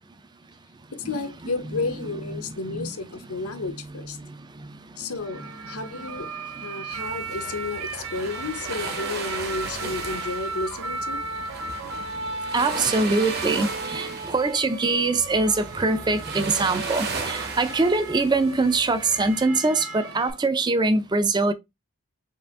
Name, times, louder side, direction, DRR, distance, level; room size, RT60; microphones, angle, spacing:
voice 1, 0.9-4.2 5.0-6.3 6.6-11.2, left 3 dB, 80° left, 0.8 m, -32 dB
voice 2, 2.4-2.9 12.5-21.5, right 3 dB, 20° right, 0.4 m, -23 dB
sound 1, 5.2-20.3, right 3 dB, 75° right, 0.8 m, -36 dB
sound 2, 6.9-19.4, right 4 dB, 45° right, 1.0 m, -36 dB
4.8 x 2.5 x 3.5 m
head